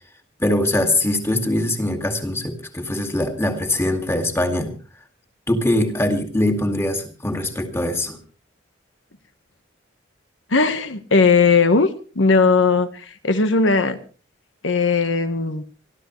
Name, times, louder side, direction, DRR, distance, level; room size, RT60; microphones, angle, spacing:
voice 1, 0.4-4.7 5.5-8.2, left 1 dB, 15° left, 6 dB, 2.2 m, -22 dB
voice 2, 10.5-11.9 12.1-12.9 13.2-14.0 14.6-15.6, left 4 dB, 80° left, 11 dB, 1.3 m, -17 dB
27.0 x 13.0 x 3.1 m, 0.36 s
head